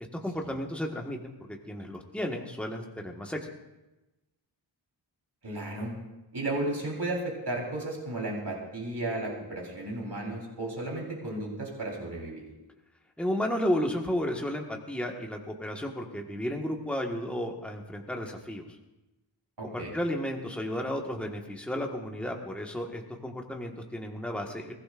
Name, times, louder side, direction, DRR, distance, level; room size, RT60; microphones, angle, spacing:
voice 1, 0.2-3.5 13.2-18.7 19.6-24.7, equal, 5° left, 1 dB, 1.5 m, -33 dB
voice 2, 5.4-5.9 6.3-12.4 19.6-19.9, right 2 dB, 60° right, -2 dB, 3.9 m, -34 dB
21.5 x 16.0 x 2.5 m, 1.0 s
wide cardioid pair, 70°, 46 cm